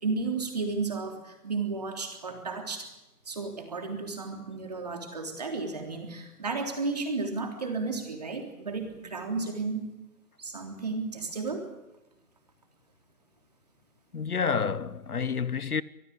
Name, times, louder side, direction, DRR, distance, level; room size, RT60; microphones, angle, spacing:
voice 1, 0.0-2.9 3.2-9.9 10.4-11.7, right 4 dB, 25° right, 3.4 m, -33 dB
voice 2, 14.1-15.8, left 6 dB, 65° left, 1.0 m, -29 dB
25.0 x 18.0 x 8.8 m
hypercardioid pair, 180°, 47 cm